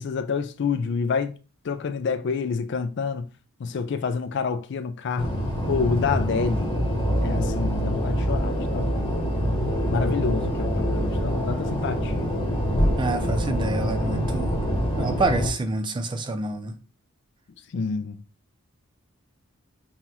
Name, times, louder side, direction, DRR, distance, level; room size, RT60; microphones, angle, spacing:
voice 1, 0.0-1.3 1.6-3.3 3.6-5.3 5.7-6.8 7.2-9.1 9.9-12.3 17.7-18.2, left 5 dB, 55° left, 0.4 m, -28 dB
sound 1, 5.2-15.5, equal, 20° left, 1.0 m, -25 dB
voice 2, 13.0-14.6 15.0-16.7, right 2 dB, 20° right, 0.3 m, -27 dB
5.6 x 2.3 x 2.9 m
head